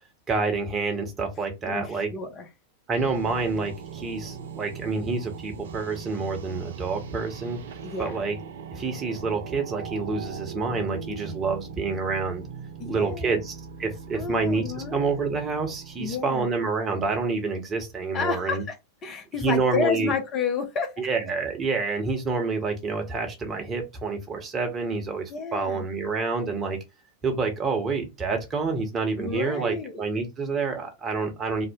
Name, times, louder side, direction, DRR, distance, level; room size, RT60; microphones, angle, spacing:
voice 1, 0.3-2.1 2.9-7.6 8.0-8.4 8.7-12.4 12.9-18.6 19.4-20.1 21.0-26.8 27.2-31.7, right 4 dB, 20° right, 0.9 m, -28 dB
voice 2, 1.6-2.5 7.8-8.2 12.8-13.4 14.1-14.9 16.0-16.5 18.1-18.8 19.0-21.1 25.3-25.9 29.2-30.1, left 5 dB, 30° left, 0.6 m, -30 dB
sound 1, 3.0-17.0, right 6 dB, 60° right, 0.4 m, -40 dB
2.8 x 2.1 x 3.5 m
figure-of-eight pair, 90°, 0 cm